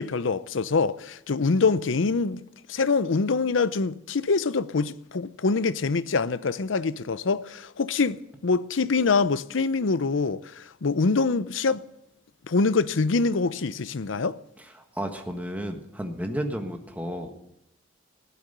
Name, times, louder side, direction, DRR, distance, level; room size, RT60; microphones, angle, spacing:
voice 1, 0.0-2.4 2.7-11.8 12.5-14.4, left 4 dB, 80° left, 0.6 m, -25 dB
voice 2, 14.9-17.3, equal, 10° right, 1.4 m, -32 dB
15.5 x 12.0 x 6.7 m
head